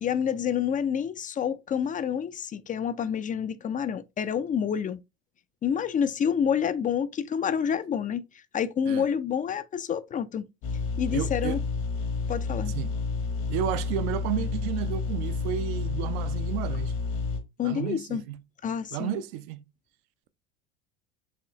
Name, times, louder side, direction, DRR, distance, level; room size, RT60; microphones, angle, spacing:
voice 1, 0.0-5.0 5.6-8.2 8.5-10.5 11.0-11.6 12.3-12.7 17.6-18.2 18.6-19.2, left 8 dB, 25° left, 0.4 m, -28 dB
sound 1, 10.6-17.4, left 4 dB, 65° left, 1.4 m, -30 dB
voice 2, 11.1-11.6 12.7-12.9 13.5-16.9 17.6-18.4 18.9-19.6, right 11 dB, 65° right, 0.6 m, -32 dB
4.8 x 3.1 x 3.0 m
hypercardioid pair, 75°, 33 cm